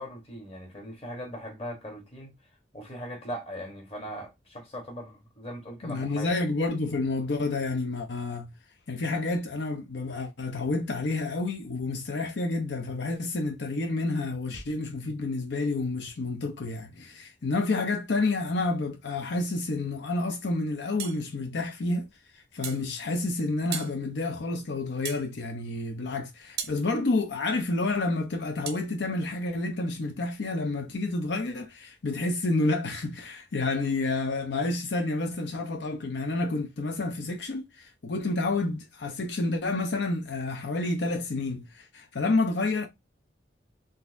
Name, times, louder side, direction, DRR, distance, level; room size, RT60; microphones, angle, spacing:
voice 1, 0.0-2.3 2.7-6.3, equal, 35° left, 1.1 m, -39 dB
voice 2, 5.8-8.5 8.9-22.1 22.3-42.9, left 2 dB, 80° left, 0.6 m, -29 dB
sound 1, 21.0-21.2 22.6-22.9 23.7-24.0 25.0-25.3 26.6-26.8 28.7-28.8, right 8 dB, 60° right, 0.5 m, -35 dB
3.9 x 2.5 x 2.5 m
head